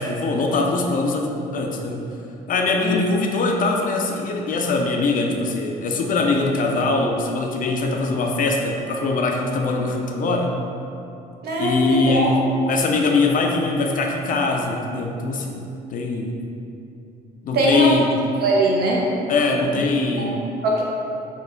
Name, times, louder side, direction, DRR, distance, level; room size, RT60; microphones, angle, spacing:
voice 1, 0.0-2.0 2.5-10.6 11.6-12.4 12.7-15.6 15.9-16.3 17.4-18.1 19.3-20.5, left 3 dB, 50° left, 2 dB, 0.4 m, -22 dB
voice 2, 11.4-12.4 17.5-17.9 18.4-19.0 20.2-20.3 20.6-20.8, right 2 dB, 60° right, -3 dB, 0.7 m, -21 dB
3.3 x 2.1 x 3.7 m, 2.7 s
supercardioid pair, 65°, 19 cm